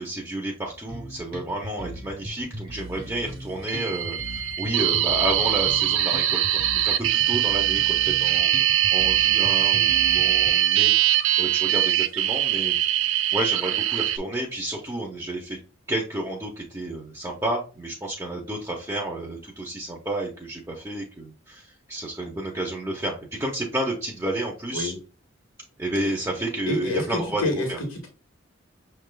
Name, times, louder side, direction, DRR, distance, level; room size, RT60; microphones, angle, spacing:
voice 1, 0.0-8.5 8.9-12.8 13.3-15.6 15.9-24.9 25.8-27.4 27.7-27.8, right 1 dB, 15° right, -3 dB, 0.7 m, -31 dB
sound 1, 0.9-10.5, right 1 dB, 45° right, 1.1 m, -38 dB
sound 2, 3.7-14.2, right 12 dB, 75° right, 0.4 m, -22 dB
voice 2, 26.7-28.1, left 2 dB, 85° left, 1 dB, 1.5 m, -28 dB
6.4 x 3.3 x 2.2 m, 0.36 s
head